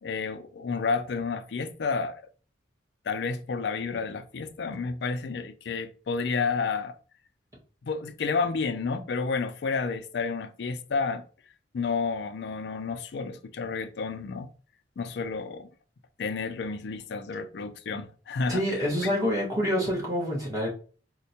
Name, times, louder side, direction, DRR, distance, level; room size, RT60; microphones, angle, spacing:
voice 1, 0.0-2.2 3.1-6.9 7.8-11.2 11.7-14.5 15.0-15.7 16.2-18.6, left 4 dB, 60° left, 0.4 m, -30 dB
voice 2, 18.5-20.7, equal, 20° right, 1.1 m, -27 dB
4.3 x 2.1 x 2.7 m
head